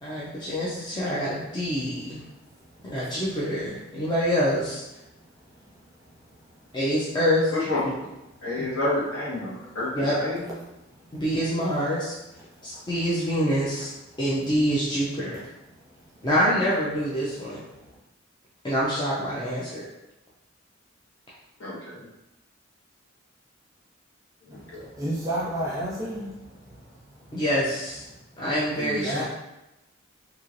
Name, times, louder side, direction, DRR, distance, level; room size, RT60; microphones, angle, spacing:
voice 1, 0.0-2.2 2.8-4.8 6.7-7.7 8.6-8.7 9.9-10.2 11.1-12.1 12.6-13.9 14.2-15.4 16.2-17.6 18.6-19.9 27.3-28.0 28.4-29.2, equal, 20° left, -8 dB, 0.4 m, -26 dB
voice 2, 8.4-10.5 21.6-22.0 24.5-24.9, left 2 dB, 75° left, -8 dB, 1.3 m, -29 dB
voice 3, 25.0-26.3 28.7-29.2, right 1 dB, 15° right, -6 dB, 0.8 m, -29 dB
3.0 x 2.8 x 2.5 m, 0.95 s
head